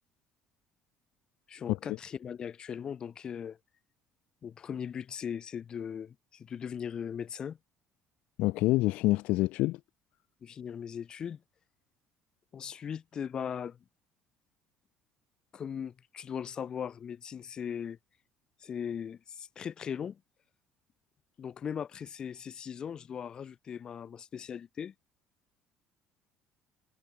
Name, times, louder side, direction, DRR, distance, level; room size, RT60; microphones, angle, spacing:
voice 1, 1.5-3.6 4.4-7.6 10.4-11.4 12.5-13.8 15.5-18.0 18.6-20.2 21.4-24.9, left 8 dB, 35° left, 4.8 m, -39 dB
voice 2, 8.4-9.8, left 19 dB, 75° left, 0.5 m, -26 dB
cardioid pair, 130°, 2 cm